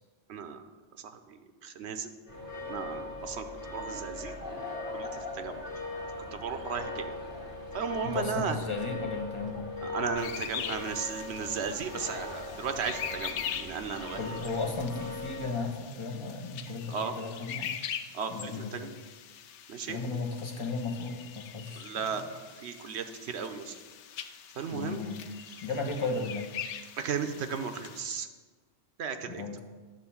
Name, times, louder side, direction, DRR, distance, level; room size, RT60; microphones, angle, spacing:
voice 1, 0.3-0.6 1.0-2.1 2.7-3.4 3.7-5.6 6.3-7.1 7.7-8.6 9.8-14.4 16.9-17.1 18.1-18.9 19.7-20.0 21.8-22.2 22.6-23.7 24.6-25.0 27.0-28.3 29.0-29.4, right 6 dB, 70° right, 8 dB, 1.0 m, -35 dB
sound 1, 2.3-15.5, left 2 dB, 50° left, 2.0 m, -40 dB
voice 2, 8.0-9.7 14.1-17.7 18.3-18.9 19.9-22.3 24.7-25.2 25.6-26.5 29.3-29.6, left 3 dB, 25° left, 2 dB, 1.1 m, -35 dB
sound 2, 10.2-28.0, left 8 dB, 85° left, 0.9 m, -42 dB
11.0 x 3.8 x 7.1 m, 1.4 s
omnidirectional pair, 1.2 m